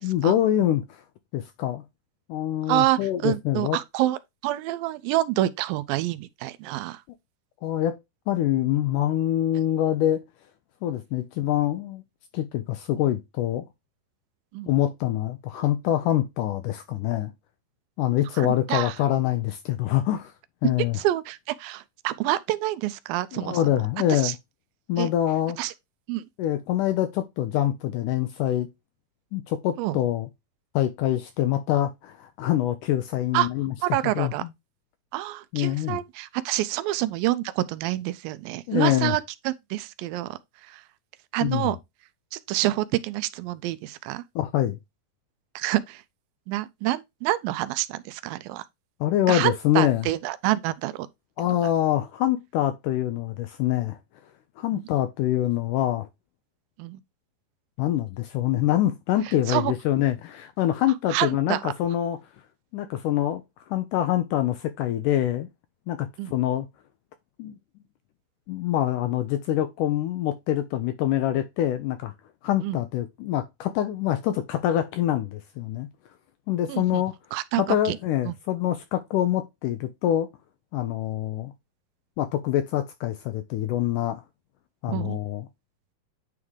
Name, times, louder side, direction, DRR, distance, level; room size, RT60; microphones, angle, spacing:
voice 1, 0.0-1.0 1.3-1.8 2.3-3.8 7.6-8.0 8.3-10.2 10.8-12.0 12.3-13.6 14.7-17.3 18.0-20.3 20.6-21.0 23.3-24.4 24.9-25.6 26.4-28.7 29.3-30.3 30.8-33.7 34.2-34.5 35.5-36.0 38.7-39.2 41.4-41.7 44.4-44.8 49.0-50.1 51.4-54.0 54.6-56.1 57.8-62.2 62.7-63.4 63.7-65.5 65.9-66.7 67.4-67.6 68.5-72.1 72.4-75.9 76.5-77.1 77.6-80.3 80.7-81.5 82.2-84.2 84.8-85.5, left 12 dB, 85° left, 1.9 m, -25 dB
voice 2, 2.7-4.2 4.4-7.0 14.5-14.7 18.4-19.0 20.9-23.6 24.1-24.3 25.0-25.1 25.6-25.7 26.1-26.2 29.8-30.0 33.3-33.5 33.8-34.4 35.1-39.2 39.5-40.8 41.3-41.8 42.3-44.2 45.6-46.0 46.5-48.6 49.3-51.1 54.7-54.8 56.8-57.0 59.3-59.7 61.1-61.7 66.2-66.3 72.6-72.8 76.7-77.0 77.3-78.0 78.3-78.4 84.9-85.2, right 15 dB, 85° right, 2.3 m, -27 dB
9.4 x 3.6 x 3.2 m
omnidirectional pair, 4.2 m